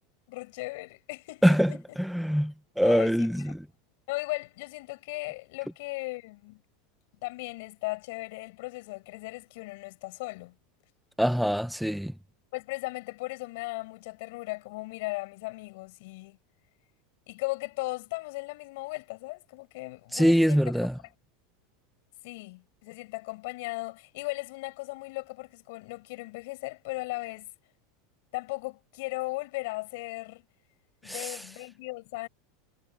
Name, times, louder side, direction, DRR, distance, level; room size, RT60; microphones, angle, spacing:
voice 1, 0.3-1.8 2.8-3.5 4.1-6.6 7.2-10.5 12.5-16.4 17.3-20.9 22.2-27.5 28.3-30.4 31.0-32.3, left 23 dB, 65° left, 7.8 m, -37 dB
voice 2, 2.0-3.6 11.2-12.1 20.1-20.9 31.1-31.4, equal, ahead, 0.9 m, -24 dB
supercardioid pair, 140°, 0 cm